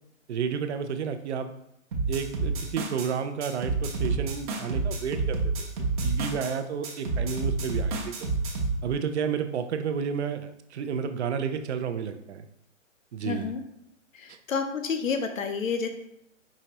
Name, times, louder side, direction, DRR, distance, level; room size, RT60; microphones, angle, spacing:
voice 1, 0.3-1.5 2.1-5.7 6.0-8.3 8.8-12.5 13.1-13.5 14.3-14.4, right 6 dB, 60° right, 9 dB, 0.5 m, -31 dB
sound 1, 1.9-3.1 3.4-6.5 6.8-8.8, right 3 dB, 40° right, 0.9 m, -29 dB
voice 2, 13.2-13.6 14.1-15.9, left 5 dB, 90° left, 6 dB, 0.8 m, -29 dB
5.0 x 2.9 x 2.9 m, 0.77 s
hypercardioid pair, 150°, 39 cm